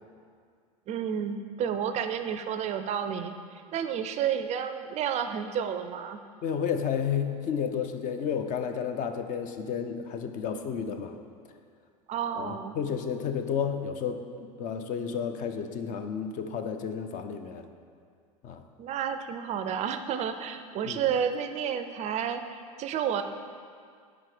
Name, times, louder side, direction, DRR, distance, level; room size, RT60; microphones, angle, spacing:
voice 1, 0.9-6.2 12.1-12.7 18.8-23.2, right 8 dB, 35° right, 9 dB, 0.4 m, -31 dB
voice 2, 6.4-11.2 12.4-17.7 18.4-18.6 20.8-21.0, left 7 dB, 45° left, 7 dB, 0.5 m, -31 dB
4.9 x 4.7 x 5.9 m, 2.2 s
hypercardioid pair, 100°, 19 cm